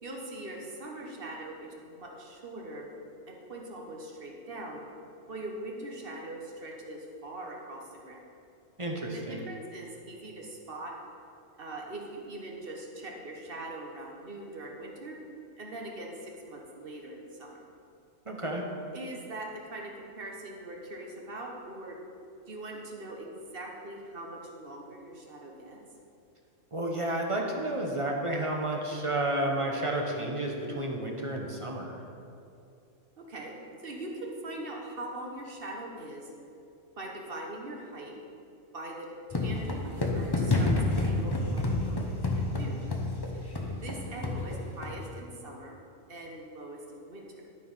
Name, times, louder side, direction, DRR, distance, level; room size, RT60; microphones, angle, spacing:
voice 1, 0.0-2.9 3.3-4.8 5.3-8.3 9.1-10.9 11.6-15.2 15.6-17.6 18.9-22.0 22.5-25.8 33.2-36.3 37.0-38.2 38.7-42.8 43.3-45.8 46.1-47.3, right 1 dB, 50° right, 0 dB, 1.3 m, -42 dB
voice 2, 8.8-9.5 18.3-18.6 26.7-32.0, right 1 dB, 30° right, 0 dB, 0.8 m, -31 dB
sound 1, 39.3-45.1, left 2 dB, 25° left, 0.7 m, -29 dB
12.0 x 4.6 x 5.5 m, 2.5 s
omnidirectional pair, 1.3 m